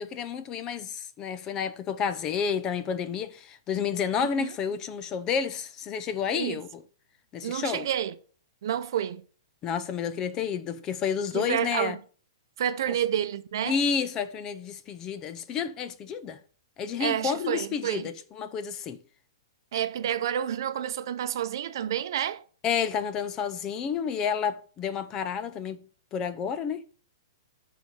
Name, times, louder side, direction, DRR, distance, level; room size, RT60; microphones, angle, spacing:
voice 1, 0.0-6.8 7.3-7.9 9.6-12.0 12.9-13.0 13.7-16.4 16.8-19.0 22.6-25.8 26.1-26.8, left 7 dB, 25° left, 0.6 m, -30 dB
voice 2, 7.4-8.1 8.6-9.2 11.3-12.0 12.6-13.8 17.0-18.1 19.7-22.4, right 10 dB, 60° right, 0.8 m, -29 dB
9.4 x 4.1 x 6.4 m
hypercardioid pair, 150°, 2 cm